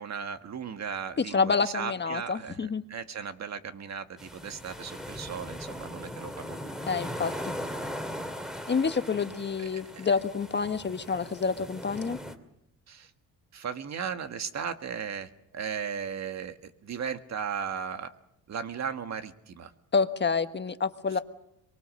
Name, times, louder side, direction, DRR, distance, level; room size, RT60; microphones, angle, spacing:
voice 1, 0.0-6.7 7.1-7.5 9.6-9.7 12.9-13.1 13.5-18.1 18.5-19.7 21.1-21.2, right 7 dB, 55° right, 8 dB, 1.8 m, -36 dB
voice 2, 1.3-2.8 6.9-7.3 8.7-12.2 19.9-21.2, left 5 dB, 30° left, 10 dB, 1.3 m, -28 dB
sound 1, 4.2-12.3, equal, ahead, 2.6 m, -39 dB
24.0 x 23.0 x 6.5 m, 0.79 s
cardioid pair, 90°, 34 cm